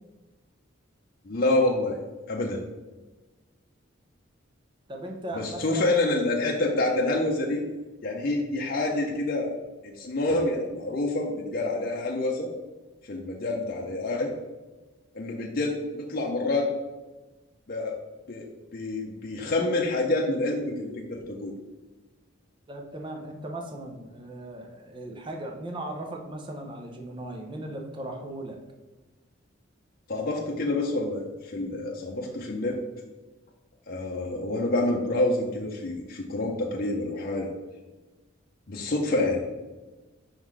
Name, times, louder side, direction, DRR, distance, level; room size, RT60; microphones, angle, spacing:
voice 1, 1.3-2.0 2.3-2.6 5.3-7.6 8.0-9.5 9.8-12.5 13.1-14.3 15.1-16.7 17.7-18.0 18.3-21.5 30.1-32.8 33.9-37.5 38.7-39.4, left 2 dB, 45° left, -1 dB, 0.6 m, -27 dB
voice 2, 4.9-6.0 22.7-28.6, right 1 dB, 25° right, 2 dB, 0.7 m, -38 dB
5.4 x 3.8 x 4.7 m, 1.2 s
head